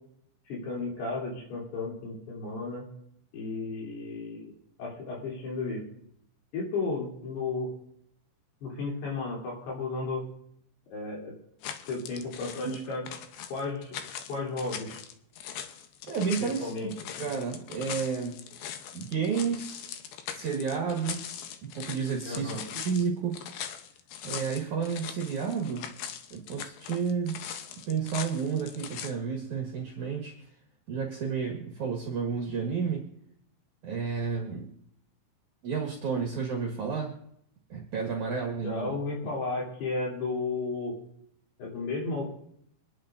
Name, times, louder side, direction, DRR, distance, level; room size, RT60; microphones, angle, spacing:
voice 1, 0.5-2.8 3.3-4.5 4.8-5.8 6.5-7.7 8.6-10.3 10.9-11.3 11.9-13.0 13.5-14.0 14.3-15.0 16.4-17.3 22.2-22.6 38.6-41.0 41.6-42.3, left 3 dB, 60° left, -3 dB, 5.1 m, -33 dB
sound 1, 11.6-29.1, left 9 dB, 85° left, 2.1 m, -41 dB
voice 2, 16.1-16.9 17.2-18.4 18.9-19.9 20.3-21.2 21.6-23.4 24.2-25.9 26.3-27.4 27.9-30.3 30.9-33.1 33.8-34.7 35.6-37.1 37.7-39.0, right 6 dB, 60° right, 0 dB, 2.1 m, -31 dB
25.5 x 10.5 x 2.6 m, 0.73 s
omnidirectional pair, 5.5 m